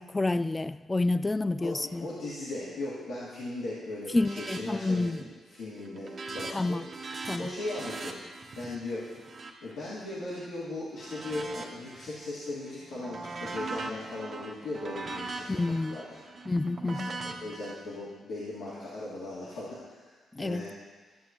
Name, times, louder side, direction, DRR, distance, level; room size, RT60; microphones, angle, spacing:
voice 1, 0.0-2.1 4.1-5.2 6.5-6.8 7.3-7.5 15.5-16.0 16.5-17.1 20.3-20.7, left 2 dB, 25° left, 0.4 m, -29 dB
voice 2, 1.6-5.2 5.5-6.8 7.2-8.1 8.6-9.1 9.6-16.2 16.8-20.7, left 2 dB, 80° left, 2.2 m, -38 dB
sound 1, 4.1-4.6 4.9-5.3 5.6-10.5 11.0-12.3 12.7-17.7, right 3 dB, 55° right, 1.1 m, -41 dB
13.0 x 6.8 x 3.0 m
supercardioid pair, 50°, 0 cm